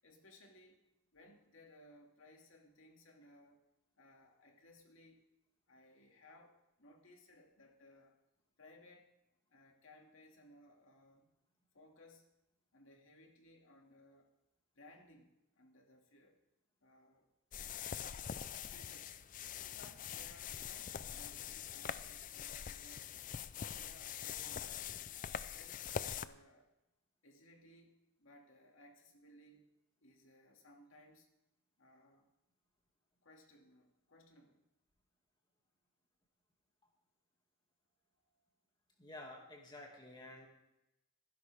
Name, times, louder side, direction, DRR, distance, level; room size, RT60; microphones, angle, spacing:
voice 1, 0.0-0.8 1.1-3.7 4.0-5.3 5.7-8.2 8.6-9.1 9.5-11.3 11.7-12.3 12.7-14.3 14.8-16.4 16.8-17.3 18.7-19.3 19.6-23.1 23.4-24.8 25.2-26.7 27.2-29.7 30.0-31.3 31.8-32.3 33.2-34.6 38.2-38.4, left 1 dB, 70° left, 2 dB, 2.2 m, -62 dB
sound 1, 17.5-26.3, left 8 dB, 40° left, 0.4 m, -44 dB
voice 2, 39.0-40.5, left 1 dB, 20° left, 0 dB, 2.2 m, -51 dB
18.5 x 10.5 x 3.5 m, 0.90 s
head